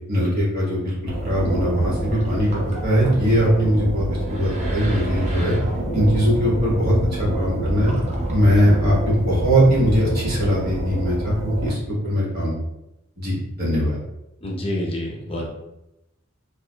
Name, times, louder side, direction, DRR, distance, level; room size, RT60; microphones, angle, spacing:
voice 1, 0.1-0.9 1.2-2.5 2.8-5.6 5.9-7.9 8.3-12.5 13.2-14.0, equal, 50° right, -6 dB, 1.3 m, -20 dB
sound 1, 1.1-11.7, equal, 35° right, 0.7 m, -26 dB
voice 2, 14.4-15.5, left 1 dB, 30° left, -2 dB, 0.6 m, -27 dB
4.6 x 2.4 x 2.2 m, 0.89 s
head